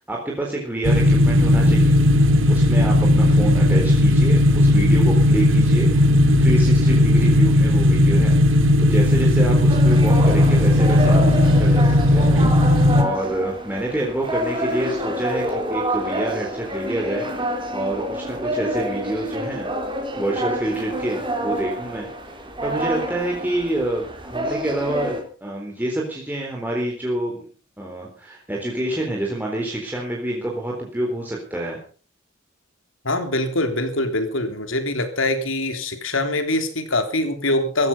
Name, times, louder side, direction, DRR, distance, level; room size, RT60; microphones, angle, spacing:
voice 1, 0.0-1.9 2.5-6.1 6.4-8.4 8.8-12.3 12.7-19.7 20.2-22.1 22.6-27.5 27.8-31.8, right 1 dB, 10° right, -2 dB, 4.0 m, -27 dB
sound 1, 0.8-13.0, left 1 dB, 80° right, 2.6 m, -16 dB
sound 2, 9.7-25.2, equal, 25° right, 4.0 m, -28 dB
voice 2, 33.0-37.9, left 2 dB, 80° left, 7 dB, 3.6 m, -23 dB
17.0 x 13.5 x 5.5 m, 0.39 s
head